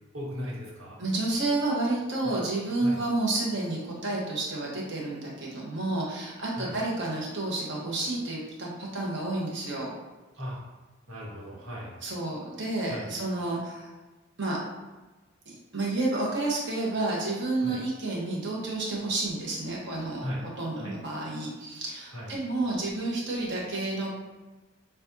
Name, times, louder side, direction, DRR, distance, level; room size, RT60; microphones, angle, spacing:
voice 1, 0.1-1.0 2.2-2.4 2.8-3.0 6.5-6.8 10.4-10.6 11.1-12.0 12.9-13.1 17.6-17.8 20.2-20.4 20.8-21.0 22.1-22.3, equal, 85° right, -5 dB, 1.5 m, -37 dB
voice 2, 1.0-9.9 12.0-13.9 14.4-14.6 15.5-20.3 20.6-24.1, right 2 dB, 60° right, -3 dB, 1.2 m, -30 dB
6.9 x 2.6 x 2.7 m, 1.2 s
head